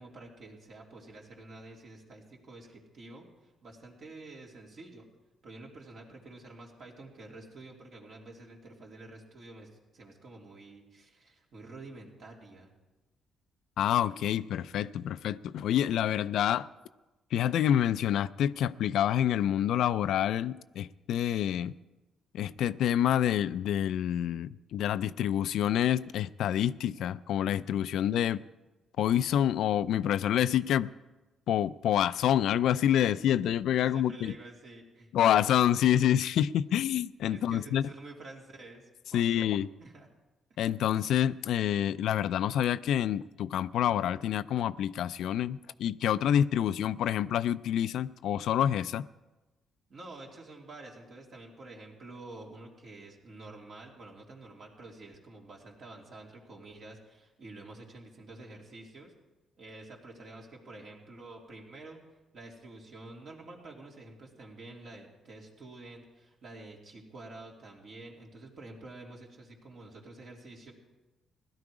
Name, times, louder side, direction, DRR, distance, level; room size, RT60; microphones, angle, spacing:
voice 1, 0.0-5.1 5.4-12.7 27.9-28.5 33.8-35.1 37.3-40.1 49.9-59.1 59.6-62.0 62.3-70.7, right 2 dB, 60° right, 3.1 m, -49 dB
voice 2, 13.8-16.7 17.3-21.7 22.3-28.4 29.0-30.9 31.5-34.3 35.1-37.8 39.1-39.7 40.6-49.1, left 10 dB, 80° left, 0.4 m, -27 dB
17.0 x 12.0 x 4.9 m
cardioid pair, 90°, 0 cm